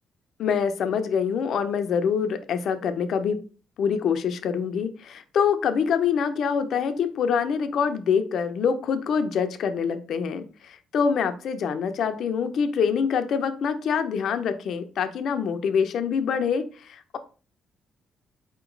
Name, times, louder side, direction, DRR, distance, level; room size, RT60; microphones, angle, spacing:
voice 1, 0.4-3.4 3.8-17.2, left 6 dB, 70° left, 9 dB, 0.5 m, -25 dB
4.3 x 3.0 x 3.8 m, 0.37 s
cardioid pair, 90°, 0 cm